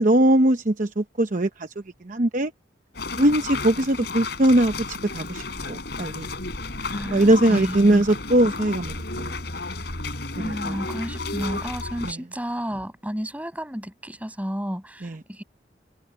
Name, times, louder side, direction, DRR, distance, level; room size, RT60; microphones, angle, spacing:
voice 1, 0.0-1.7 2.0-2.5 3.2-6.3 7.1-9.4 10.4-10.7 12.0-12.2 15.0-15.2, right 1 dB, 45° right, 0.9 m, -21 dB
sound 1, 2.9-12.1, left 3 dB, 60° left, 4.2 m, -32 dB
voice 2, 6.8-8.0 10.4-15.4, equal, 10° right, 6.7 m, -32 dB
head